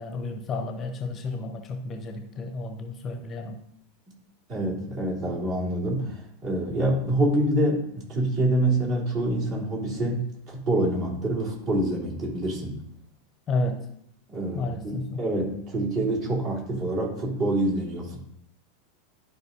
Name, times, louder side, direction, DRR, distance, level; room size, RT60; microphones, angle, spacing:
voice 1, 0.0-3.6 13.5-13.9 14.5-15.3, left 2 dB, 30° left, 7 dB, 0.8 m, -31 dB
voice 2, 4.5-12.8 14.3-18.2, right 1 dB, 40° right, -3 dB, 3.3 m, -26 dB
12.0 x 5.0 x 2.6 m, 0.74 s
figure-of-eight pair, 85°, 0 cm